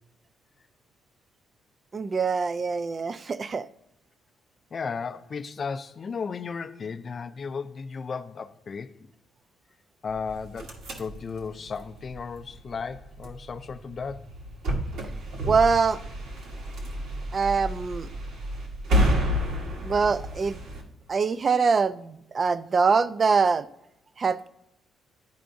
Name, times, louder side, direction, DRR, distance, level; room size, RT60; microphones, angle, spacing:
voice 1, 1.9-3.7 15.5-16.0 17.3-18.1 19.8-20.6 21.1-23.7 24.2-24.5, right 5 dB, 30° right, 0.3 m, -24 dB
voice 2, 4.7-8.9 10.0-14.2, left 5 dB, 35° left, 0.4 m, -35 dB
sound 1, 10.1-20.8, equal, 70° right, 1.4 m, -30 dB
11.5 x 4.6 x 2.6 m
cardioid pair, 130°, 0 cm